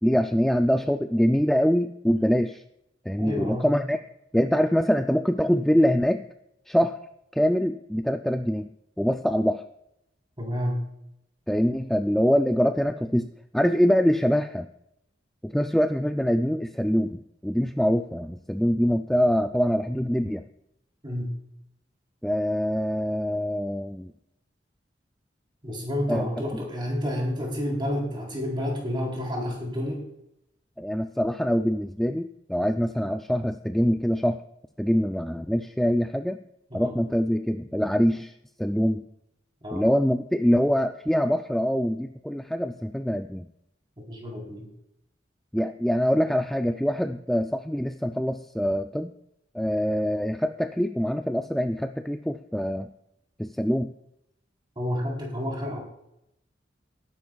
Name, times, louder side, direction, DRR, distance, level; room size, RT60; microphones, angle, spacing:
voice 1, 0.0-2.6 3.1-4.0 4.3-6.2 6.7-7.0 7.3-8.7 9.0-9.6 11.5-13.3 13.5-14.7 15.4-20.4 22.2-24.1 26.1-26.3 30.8-34.4 34.8-36.4 36.7-38.3 38.6-39.1 39.7-43.5 45.5-49.1 49.5-52.9 53.4-53.9, equal, ahead, 6 dB, 0.3 m, -24 dB
voice 2, 3.2-3.7 10.4-10.8 21.0-21.3 25.6-30.0 36.7-36.9 39.6-39.8 44.1-44.7 54.8-55.8, left 1 dB, 25° right, -1 dB, 3.7 m, -29 dB
19.0 x 11.0 x 2.3 m, 0.80 s
head